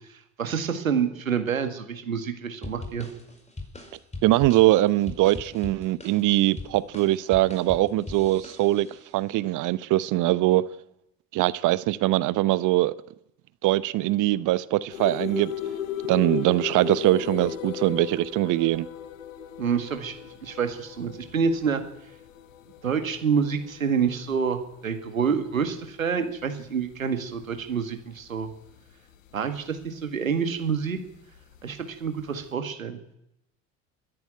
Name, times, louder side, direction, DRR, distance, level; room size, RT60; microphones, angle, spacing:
voice 1, 0.1-3.1 19.6-21.8 22.8-28.5 29.3-31.0 31.6-33.0, right 6 dB, 85° right, 1.9 m, -27 dB
sound 1, 2.6-9.1, left 3 dB, 15° left, 5.0 m, -41 dB
voice 2, 4.2-8.9 9.1-10.6 11.3-12.9 13.6-15.5 16.1-18.9, right 16 dB, 50° right, 0.9 m, -22 dB
sound 2, 14.9-30.5 31.0-32.4, left 10 dB, 75° left, 1.2 m, -37 dB
28.5 x 11.0 x 9.2 m
figure-of-eight pair, 60°, 40 cm